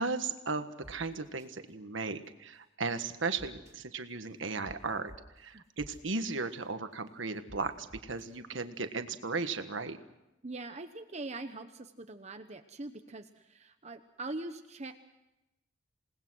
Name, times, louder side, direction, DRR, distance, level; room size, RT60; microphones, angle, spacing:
voice 1, 0.0-5.1 5.4-10.0, right 4 dB, 65° right, 8 dB, 1.5 m, -36 dB
sound 1, 0.8-0.9 1.4-1.5 3.4-3.7 4.6-4.7 5.1-5.2 5.8-6.0 7.5-7.6 7.9-8.3, right 1 dB, 15° right, 2.9 m, -49 dB
voice 2, 10.4-14.9, right 2 dB, 35° right, 7 dB, 0.9 m, -42 dB
28.5 x 19.5 x 6.3 m, 0.94 s
head